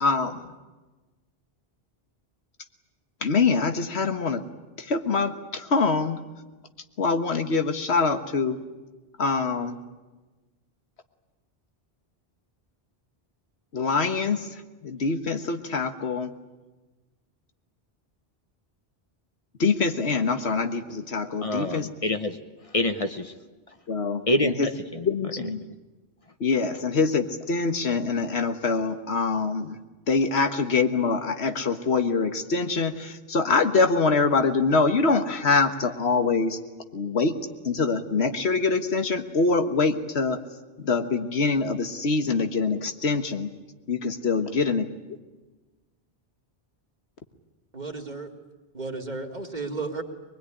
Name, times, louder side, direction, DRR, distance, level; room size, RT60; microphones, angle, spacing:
voice 1, 0.0-0.4 3.2-4.4 4.9-6.2 7.0-8.6 9.2-9.8 13.7-14.4 14.8-16.3 19.6-21.9 23.9-24.7 25.1-25.6 26.4-29.8 30.1-36.6 36.9-37.4 37.7-40.4 40.8-43.5 43.9-44.9, left 4 dB, 90° left, 7 dB, 1.6 m, -24 dB
voice 2, 21.4-22.4 22.7-23.3 24.3-25.1 25.4-25.5, left 1 dB, 35° left, 7 dB, 1.1 m, -26 dB
voice 3, 47.7-48.3 48.7-50.0, right 3 dB, 45° right, 3 dB, 2.1 m, -33 dB
23.5 x 20.5 x 9.9 m, 1.2 s
omnidirectional pair, 1.1 m